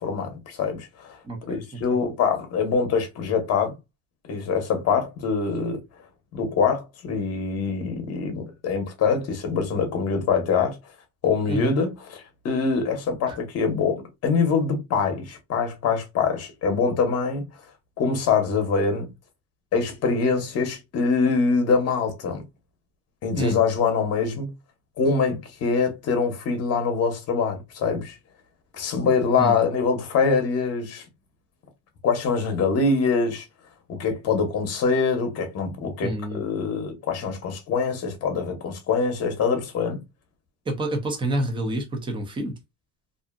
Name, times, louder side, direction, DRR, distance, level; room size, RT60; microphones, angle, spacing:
voice 1, 0.0-3.7 4.3-5.8 6.3-10.8 11.2-17.4 18.0-19.1 19.7-22.4 23.2-24.5 25.0-28.2 28.7-31.0 32.0-33.4 33.9-40.0, left 5 dB, 35° left, 0.8 m, -24 dB
voice 2, 1.2-1.8 11.5-11.7 13.3-13.4 23.4-23.6 29.4-29.6 36.0-36.4 40.7-42.6, right 1 dB, 15° right, 0.4 m, -28 dB
2.6 x 2.5 x 2.4 m
cardioid pair, 175°, 41 cm